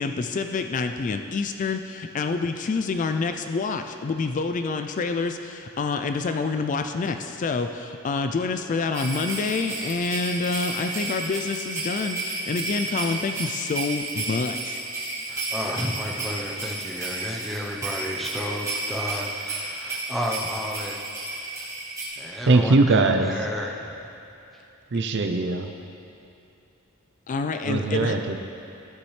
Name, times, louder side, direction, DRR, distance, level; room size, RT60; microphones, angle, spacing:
voice 1, 0.0-14.8 27.3-28.1, left 4 dB, 35° left, 7 dB, 0.3 m, -27 dB
sound 1, 8.9-22.1, right 2 dB, 15° right, 1.9 m, -32 dB
voice 2, 15.3-21.0 21.4-21.5 22.2-23.9, equal, ahead, -1 dB, 0.8 m, -32 dB
voice 3, 22.5-23.3 24.9-25.7 27.6-28.4, right 3 dB, 55° right, 6 dB, 0.5 m, -21 dB
13.0 x 6.9 x 3.2 m, 2.7 s
head